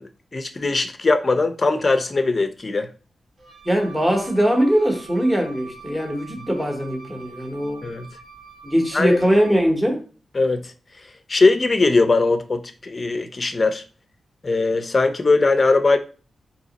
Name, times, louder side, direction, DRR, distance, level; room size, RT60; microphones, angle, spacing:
voice 1, 0.0-2.9 7.8-8.1 8.9-9.2 10.3-10.7 11.3-13.8 14.4-16.0, left 3 dB, 35° left, 0.5 m, -20 dB
Wind instrument woodwind instrument, 3.4-9.7, right 4 dB, 50° right, 1.0 m, -45 dB
voice 2, 3.6-7.8 8.6-10.0, equal, 5° right, 0.9 m, -21 dB
3.9 x 2.8 x 4.0 m
wide cardioid pair, 125°, 0 cm